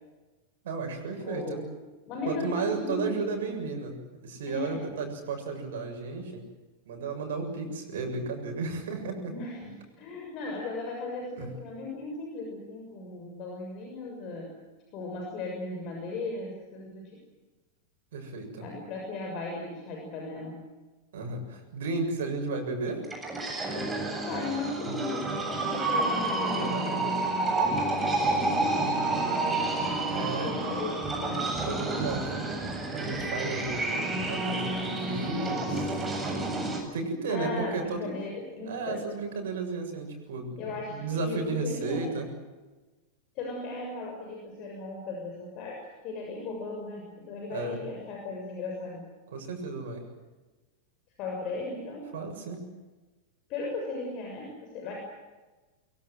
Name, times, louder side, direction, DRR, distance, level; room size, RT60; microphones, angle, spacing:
voice 1, 0.6-1.6 2.2-6.4 6.9-9.3 11.4-11.5 18.1-18.7 21.1-23.1 24.8-25.0 26.5-27.1 28.7-29.1 30.1-30.5 31.6-32.3 32.9-36.5 36.8-38.1 38.6-42.3 47.5-47.8 49.3-50.0 52.1-52.6, right 4 dB, 60° right, 5 dB, 7.3 m, -34 dB
voice 2, 1.2-1.7 2.1-3.5 4.5-4.8 9.3-14.5 14.9-17.2 18.6-20.6 24.2-28.6 30.1-31.5 37.3-39.0 40.6-42.1 43.3-49.0 51.2-52.1 53.5-55.0, left 3 dB, 40° left, 1 dB, 6.7 m, -37 dB
sound 1, 23.0-36.8, right 2 dB, 10° right, 7.7 m, -29 dB
24.0 x 24.0 x 7.9 m, 1.2 s
figure-of-eight pair, 90°, 0 cm